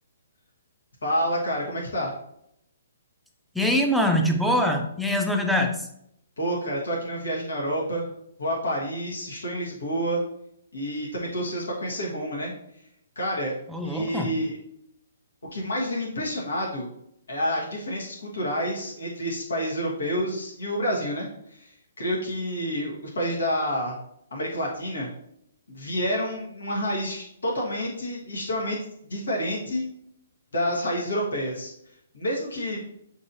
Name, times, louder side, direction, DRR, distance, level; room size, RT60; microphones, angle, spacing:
voice 1, 1.0-2.1 6.4-8.1 8.4-10.2 10.7-12.5 13.2-13.5 13.8-14.6 15.5-16.9 17.3-24.0 24.3-25.1 25.7-28.8 29.0-29.8 30.5-31.7 32.1-32.8, equal, 75° left, -3 dB, 1.2 m, -28 dB
voice 2, 3.5-5.9 13.7-14.3, left 1 dB, ahead, 2 dB, 0.5 m, -23 dB
6.1 x 2.8 x 2.6 m, 0.75 s
figure-of-eight pair, 130°, 0 cm